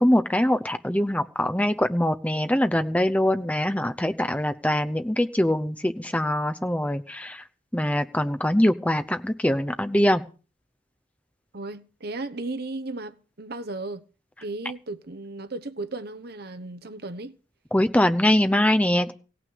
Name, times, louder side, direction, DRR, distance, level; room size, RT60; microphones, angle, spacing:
voice 1, 0.0-7.4 7.7-10.2 17.7-19.1, left 1 dB, 5° left, 0.7 m, -23 dB
voice 2, 11.5-14.0 14.4-17.4, right 2 dB, 50° right, 1.0 m, -35 dB
16.5 x 6.1 x 9.5 m
head